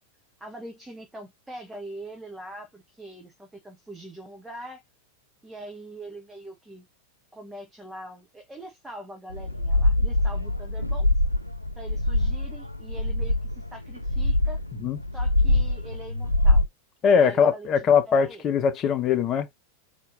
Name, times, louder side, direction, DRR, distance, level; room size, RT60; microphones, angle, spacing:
voice 1, 0.4-4.8 5.4-6.9 7.3-11.1 11.8-14.6 15.1-16.6 17.1-18.5, right 1 dB, 10° right, 1.0 m, -42 dB
sound 1, 9.3-16.7, left 1 dB, 90° left, 0.4 m, -24 dB
voice 2, 17.0-19.5, left 6 dB, 30° left, 0.8 m, -21 dB
4.3 x 3.0 x 2.6 m
figure-of-eight pair, 90°, 0 cm